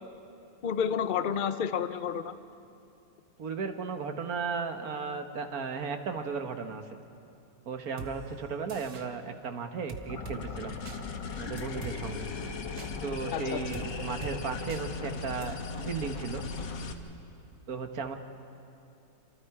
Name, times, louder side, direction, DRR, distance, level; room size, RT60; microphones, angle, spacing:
voice 1, 0.6-2.4 13.3-13.6, left 7 dB, 60° left, 11 dB, 0.5 m, -30 dB
voice 2, 3.4-6.8 7.6-10.8 11.4-12.2 13.0-16.4 17.7-18.2, right 5 dB, 55° right, 6 dB, 1.7 m, -35 dB
sound 1, 8.0-8.1 8.7-9.1 9.9-10.4 10.9-11.0 11.6-12.0 12.8-12.9 13.7-13.9 14.2-14.4 14.7-14.8 15.4-15.5, right 4 dB, 85° right, 2.0 m, -41 dB
sound 2, 10.1-16.9, left 4 dB, 75° left, 2.0 m, -37 dB
29.0 x 26.0 x 4.8 m, 2.6 s
omnidirectional pair, 1.9 m